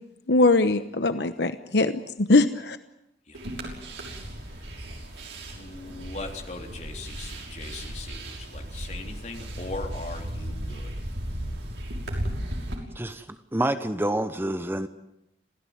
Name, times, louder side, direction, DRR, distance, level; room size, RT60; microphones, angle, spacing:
voice 1, 0.3-2.8, left 2 dB, 70° left, 11 dB, 1.0 m, -21 dB
sound 1, 3.3-12.8, right 1 dB, 80° right, 6.1 m, -35 dB
voice 2, 5.5-10.9, left 3 dB, 40° left, 3 dB, 3.6 m, -40 dB
voice 3, 12.9-14.9, right 1 dB, 15° right, 10 dB, 1.0 m, -28 dB
27.0 x 16.5 x 9.5 m, 0.85 s
head